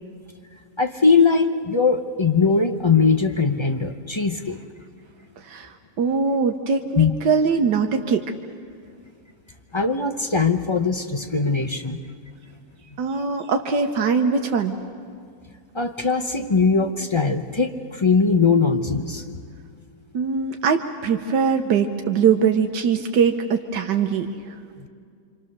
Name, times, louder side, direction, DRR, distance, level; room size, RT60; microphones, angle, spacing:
voice 1, 0.8-4.6 7.0-7.1 9.7-12.0 15.7-19.4 24.8-24.9, left 4 dB, 30° left, 6 dB, 0.5 m, -20 dB
voice 2, 5.4-8.2 13.0-14.8 20.1-24.9, right 6 dB, 85° right, 5 dB, 1.6 m, -22 dB
26.5 x 26.0 x 6.7 m, 2.2 s
omnidirectional pair, 1.8 m